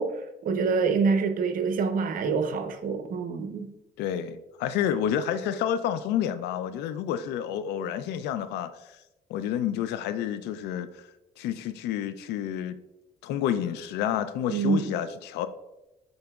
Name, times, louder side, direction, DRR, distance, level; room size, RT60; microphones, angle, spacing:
voice 1, 0.0-3.7 14.5-15.0, right 5 dB, 55° right, 0.8 m, -26 dB
voice 2, 4.0-9.0 9.3-11.1 11.4-12.8 13.2-15.5, left 9 dB, 85° left, 0.4 m, -29 dB
10.5 x 3.9 x 2.3 m
cardioid pair, 110°, 17 cm